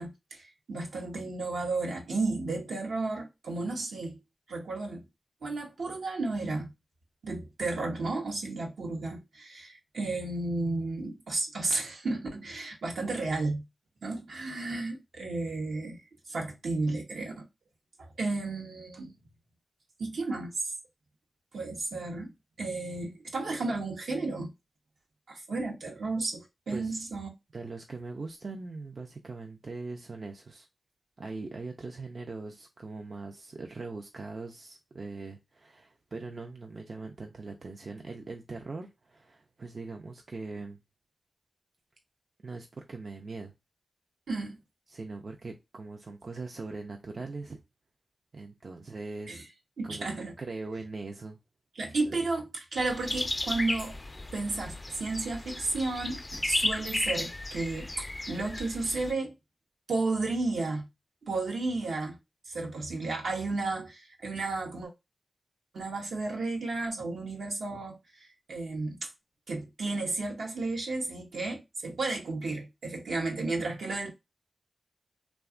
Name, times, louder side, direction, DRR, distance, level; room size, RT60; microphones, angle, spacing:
voice 1, 0.0-4.2 4.5-5.1 5.4-6.7 7.2-13.6 14.0-16.0 16.3-17.4 18.0-19.1 20.0-20.7 21.5-22.3 22.6-24.5 25.3-27.3 44.3-44.6 49.3-49.4 49.8-50.4 51.8-54.0 54.3-59.4 59.9-60.9 61.2-62.2 62.5-64.9 65.7-69.1 69.5-74.1, right 3 dB, 85° right, 0.7 m, -33 dB
voice 2, 26.7-27.0 27.5-30.7 31.2-40.8 42.4-43.5 44.9-47.6 48.3-49.5 49.8-51.4 52.1-52.2, right 3 dB, 60° right, 0.4 m, -41 dB
sound 1, 52.8-59.1, left 2 dB, 35° left, 0.3 m, -34 dB
2.8 x 2.2 x 2.4 m
cardioid pair, 45°, 0 cm